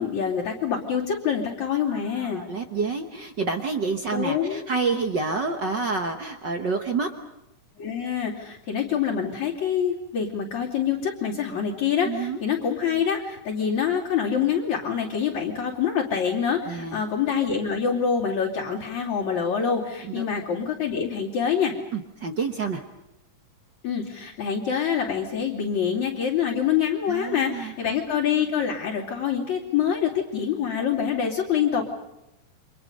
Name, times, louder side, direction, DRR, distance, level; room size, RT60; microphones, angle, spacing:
voice 1, 0.0-2.4 4.1-4.6 7.8-21.7 23.8-31.8, left 7 dB, 60° left, -7 dB, 4.0 m, -26 dB
voice 2, 1.9-7.1 12.0-12.4 16.7-17.0 20.0-20.2 21.9-22.8 27.1-27.7, right 4 dB, 55° right, 5 dB, 1.2 m, -28 dB
29.5 x 25.5 x 5.4 m, 0.90 s
omnidirectional pair, 3.7 m